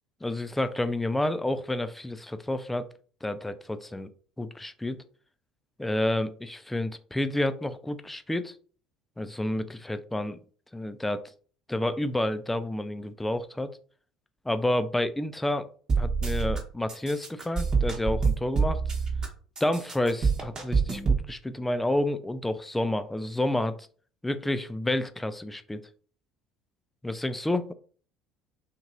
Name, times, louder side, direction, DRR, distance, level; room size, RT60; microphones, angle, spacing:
voice 1, 0.2-2.9 3.2-4.1 4.4-5.0 5.8-8.6 9.2-10.4 10.7-11.2 11.7-13.8 14.5-15.7 16.0-18.8 19.6-23.8 24.2-25.8 27.0-27.7, left 1 dB, 10° left, 10 dB, 0.4 m, -29 dB
sound 1, 15.9-16.6 16.9-19.3 19.6-21.2, right 5 dB, 35° right, 0.9 m, -26 dB
2.9 x 2.9 x 2.4 m, 0.43 s
figure-of-eight pair, 60°, 2 cm